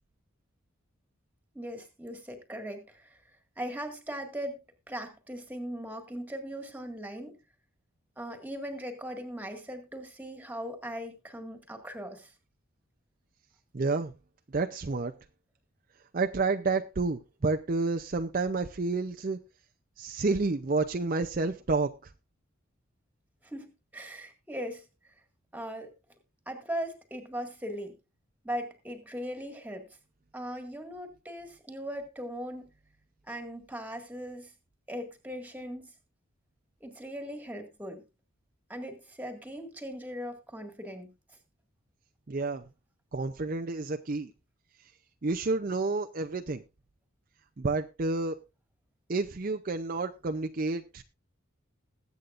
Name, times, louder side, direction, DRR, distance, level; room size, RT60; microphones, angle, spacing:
voice 1, 1.5-3.2 3.6-4.6 4.9-7.4 8.2-12.3 23.4-24.9 25.5-25.9 26.5-28.0 28.4-30.0 30.3-32.7 33.3-34.5 34.9-35.9 36.8-38.0 38.7-41.1, equal, 10° right, 5 dB, 1.9 m, -39 dB
voice 2, 13.7-14.1 14.5-15.1 16.1-19.4 20.0-22.1 42.3-42.6 43.1-44.3 45.2-46.6 47.6-48.4 49.1-51.0, right 3 dB, 40° right, 6 dB, 0.6 m, -30 dB
21.0 x 8.3 x 2.5 m, 0.27 s
head